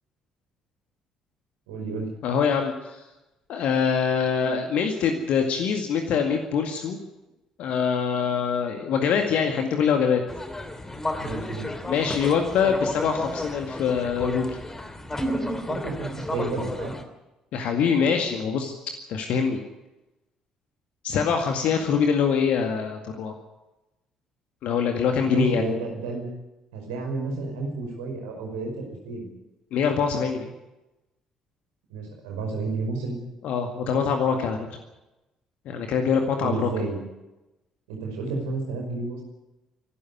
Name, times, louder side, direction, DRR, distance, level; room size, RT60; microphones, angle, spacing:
voice 1, 1.7-2.1 11.2-11.7 15.1-16.9 25.2-26.3 26.7-29.3 31.9-33.2 36.4-37.0 37.9-39.2, right 3 dB, 70° right, 2 dB, 5.3 m, -31 dB
voice 2, 2.2-3.0 3.5-7.0 7.6-10.2 11.9-14.6 17.5-18.7 19.1-19.6 21.0-23.3 24.6-25.7 29.7-30.5 33.4-34.7 35.7-36.7, left 6 dB, 55° left, 4 dB, 2.0 m, -24 dB
sound 1, 10.3-17.0, left 2 dB, 15° left, 2.8 m, -33 dB
25.0 x 12.5 x 9.7 m, 1.0 s
figure-of-eight pair, 45°, 3 cm